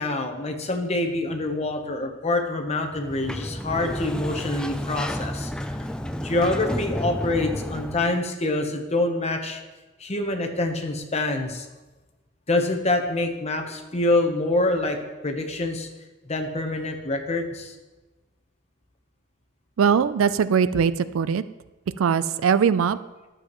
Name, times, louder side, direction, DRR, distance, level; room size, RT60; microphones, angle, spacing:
voice 1, 0.0-5.8 6.2-9.6 10.0-11.7 12.5-15.9 16.3-17.7, left 2 dB, 30° left, 4 dB, 1.0 m, -26 dB
Sliding door, 2.9-8.2, equal, 5° left, 0.3 m, -31 dB
voice 2, 19.8-21.4 22.0-23.0, right 6 dB, 80° right, 15 dB, 0.4 m, -21 dB
12.0 x 7.7 x 3.1 m, 1.1 s
head